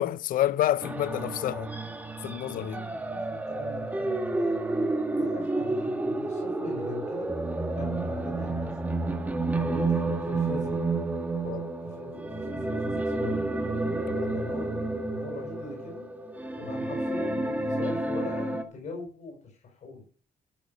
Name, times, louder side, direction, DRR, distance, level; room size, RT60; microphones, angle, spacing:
voice 1, 0.0-1.7 2.2-2.8 11.4-11.7 14.1-14.4, left 13 dB, 75° left, 0.5 m, -29 dB
sound 1, 0.8-18.6, right 2 dB, 10° right, 1.9 m, -30 dB
voice 2, 2.4-4.6 5.2-7.3 7.8-8.9 9.5-10.8 11.8-13.5 14.3-16.0 16.5-20.0, left 3 dB, 55° left, 5.3 m, -41 dB
13.0 x 7.5 x 6.5 m
cardioid pair, 155°, 14 cm